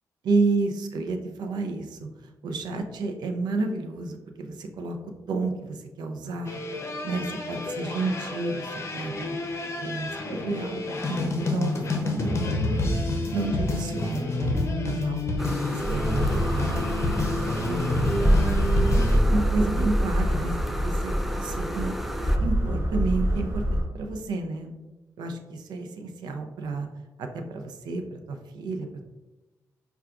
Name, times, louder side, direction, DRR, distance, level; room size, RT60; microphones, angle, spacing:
voice 1, 0.3-2.1 2.4-5.0 5.3-6.6 7.0-9.4 9.8-12.4 12.7-12.9 13.3-14.5 14.8-15.2 15.7-16.9 17.6-18.4 19.0-22.0 22.4-24.7 25.2-26.9 27.2-29.0, right 3 dB, 85° right, 5 dB, 0.5 m, -31 dB
sound 1, 6.4-19.2, left 2 dB, 40° left, 0.6 m, -28 dB
sound 2, 15.4-22.4, equal, 5° right, 0.3 m, -35 dB
sound 3, 15.8-23.8, equal, 35° right, 0.9 m, -25 dB
5.6 x 2.3 x 2.4 m, 1.1 s
cardioid pair, 85°, 7 cm